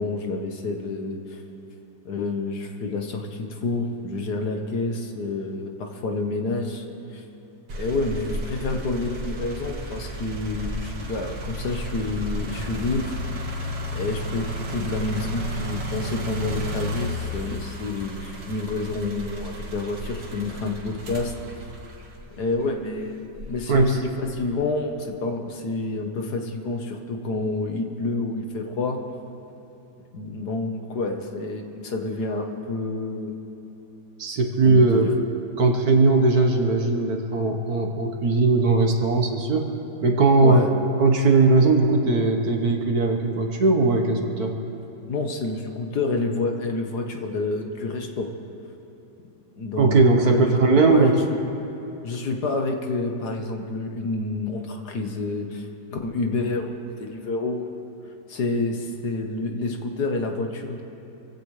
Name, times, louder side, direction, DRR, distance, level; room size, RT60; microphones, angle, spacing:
voice 1, 0.0-1.4 2.0-6.8 7.1-7.2 7.8-13.2 13.9-21.3 22.4-29.0 30.1-33.4 34.6-35.1 40.4-40.7 45.1-48.3 49.6-51.4 52.0-57.7 58.3-60.8, left 3 dB, 65° left, 4 dB, 1.7 m, -28 dB
sound 1, 7.7-22.7 23.3-24.5, equal, 90° right, 2.4 m, -33 dB
voice 2, 23.7-24.0 34.2-35.1 35.6-39.7 40.0-40.6 41.0-44.6 49.8-51.2, right 3 dB, 60° right, 3 dB, 1.7 m, -19 dB
27.0 x 16.0 x 3.3 m, 2.9 s
omnidirectional pair, 1.9 m